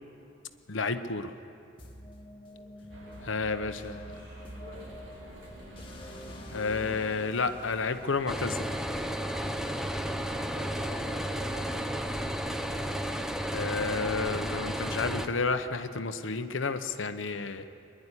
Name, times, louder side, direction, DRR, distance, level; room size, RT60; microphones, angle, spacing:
voice 1, 0.7-1.3 3.2-4.0 6.5-8.7 13.5-17.6, left 4 dB, 75° left, 9 dB, 0.9 m, -31 dB
sound 1, 1.8-9.7, left 1 dB, 25° left, 1.8 m, -47 dB
voice 2, 2.9-5.1 10.1-12.1, equal, 55° right, -4 dB, 5.0 m, -48 dB
sound 2, 2.9-10.4, right 1 dB, 85° right, 4.0 m, -50 dB
sound 3, 8.3-15.3, equal, 5° right, 0.9 m, -33 dB
25.0 x 11.0 x 9.9 m, 2.6 s
head